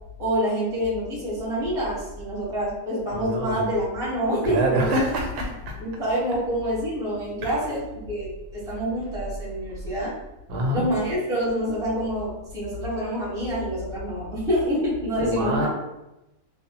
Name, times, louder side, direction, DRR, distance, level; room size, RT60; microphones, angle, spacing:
voice 1, 0.2-5.0 5.8-10.2 10.7-15.7, equal, 5° right, -7 dB, 0.5 m, -27 dB
voice 2, 3.1-3.6 4.4-5.8 7.4-7.6 10.5-10.9 15.2-15.7, right 1 dB, 90° right, 1 dB, 1.2 m, -26 dB
2.7 x 2.0 x 2.8 m, 0.96 s
omnidirectional pair, 1.6 m